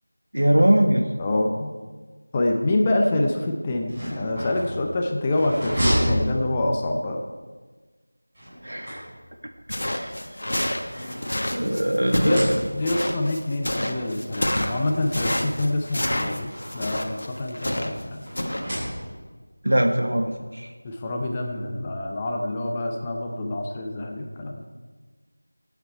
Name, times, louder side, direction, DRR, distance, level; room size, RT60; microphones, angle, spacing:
voice 1, 0.3-1.1 8.6-9.0 9.8-10.1 10.9-11.1 11.5-12.6 19.6-20.7, right 1 dB, 85° right, 4 dB, 1.3 m, -21 dB
voice 2, 1.2-1.7 2.3-7.2 12.2-18.3 20.8-24.6, left 1 dB, 10° left, 1 dB, 0.6 m, -26 dB
sound 1, 3.8-7.1 8.3-9.5 10.3-11.7 12.1-13.1 14.0-14.1 14.4-14.5 15.7-17.0 18.3-19.4, equal, 15° right, 3.8 m, -30 dB
sound 2, 9.7-18.0 18.4-18.6, left 1 dB, 55° left, 1.4 m, -28 dB
17.0 x 8.1 x 4.5 m, 1.4 s
figure-of-eight pair, 175°, 0 cm